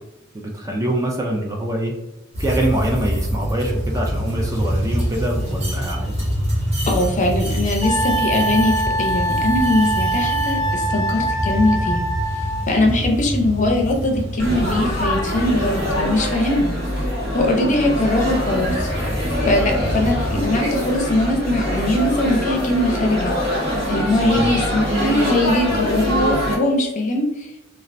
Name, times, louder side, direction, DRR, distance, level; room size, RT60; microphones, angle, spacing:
voice 1, 0.3-1.9 2.4-6.3 12.9-13.0 19.7-20.0 24.3-24.5, right 1 dB, 15° right, 0 dB, 0.4 m, -24 dB
sound 1, 2.3-16.4 18.1-20.4, equal, 35° right, 0.9 m, -26 dB
voice 2, 6.9-12.0 12.7-16.7 17.3-18.9 19.5-23.3 23.9-27.6, left 1 dB, 40° left, 2 dB, 0.5 m, -21 dB
Wind instrument woodwind instrument, 7.8-12.7, right 1 dB, 80° right, 1.5 m, -23 dB
Laughter / Chatter / Crowd, 14.4-26.5, equal, 55° right, 1.1 m, -23 dB
3.1 x 2.3 x 2.5 m, 0.94 s
head